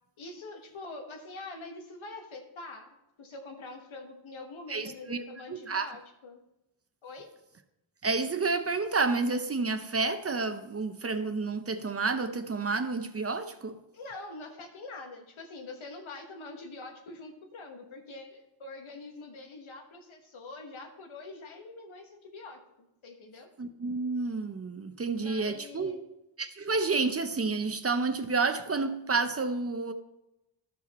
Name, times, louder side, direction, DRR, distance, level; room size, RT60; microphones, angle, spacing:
voice 1, 0.2-6.4 7.0-7.3 13.9-22.6 23.0-23.5 25.2-26.0, left 3 dB, 90° left, 4 dB, 1.3 m, -45 dB
voice 2, 4.7-5.9 8.0-13.8 23.6-25.9 26.4-29.9, right 4 dB, 30° right, 9 dB, 0.6 m, -30 dB
12.0 x 5.0 x 4.1 m, 0.90 s
wide cardioid pair, 115°, 46 cm